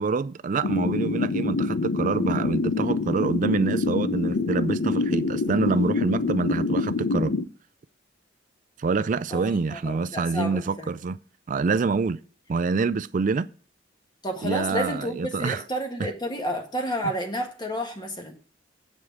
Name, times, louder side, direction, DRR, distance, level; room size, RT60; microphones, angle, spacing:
voice 1, 0.0-7.3 8.8-11.2 11.5-12.2 12.5-13.5 14.4-15.6 16.0-16.1, right 4 dB, 45° right, 0.4 m, -26 dB
sound 1, 0.6-7.4, left 3 dB, 70° left, 0.6 m, -26 dB
voice 2, 9.3-10.9 14.2-18.3, equal, 25° left, 1.4 m, -31 dB
7.6 x 4.9 x 7.1 m
head